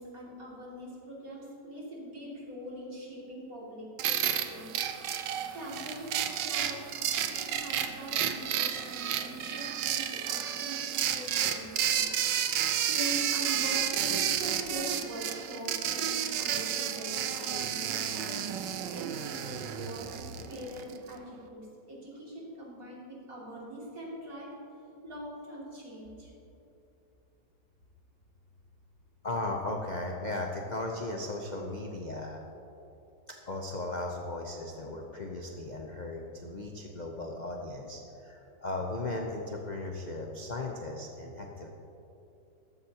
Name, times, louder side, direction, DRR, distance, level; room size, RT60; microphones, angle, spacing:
voice 1, 0.0-5.2 5.5-6.9 7.2-12.1 12.7-18.6 18.9-24.5 25.0-26.3, right 1 dB, 45° right, -5 dB, 3.0 m, -43 dB
sound 1, 4.0-21.0, right 10 dB, 70° right, 1.3 m, -31 dB
voice 2, 29.2-32.4 33.5-41.7, left 2 dB, 60° left, 0 dB, 0.4 m, -36 dB
14.0 x 12.5 x 2.9 m, 2.9 s
omnidirectional pair, 2.1 m